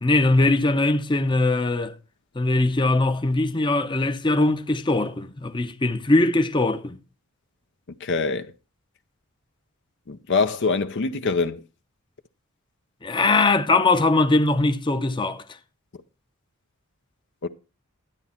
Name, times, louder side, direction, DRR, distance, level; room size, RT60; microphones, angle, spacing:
voice 1, 0.0-1.9 2.4-7.0 13.0-15.4, left 2 dB, 20° left, 0.7 m, -21 dB
voice 2, 8.0-8.5 10.1-11.6 17.4-17.5, left 4 dB, 55° left, 0.7 m, -24 dB
12.0 x 9.3 x 4.3 m
head